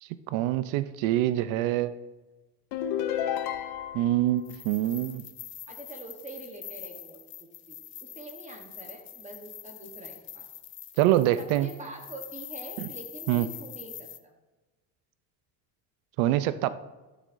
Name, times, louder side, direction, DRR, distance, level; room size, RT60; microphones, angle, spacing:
voice 1, 0.0-2.0 3.9-5.3 11.0-11.7 12.8-12.9 13.3-13.5 16.2-16.7, right 14 dB, 80° right, 14 dB, 0.6 m, -25 dB
sound 1, 2.7-4.2, left 10 dB, 60° left, 0.7 m, -31 dB
sound 2, 4.4-14.2, left 10 dB, 30° left, 0.4 m, -44 dB
voice 2, 5.7-10.5 11.4-14.3, right 2 dB, 15° right, 2 dB, 1.0 m, -45 dB
12.5 x 7.2 x 2.6 m, 1.2 s
cardioid pair, 135°, 44 cm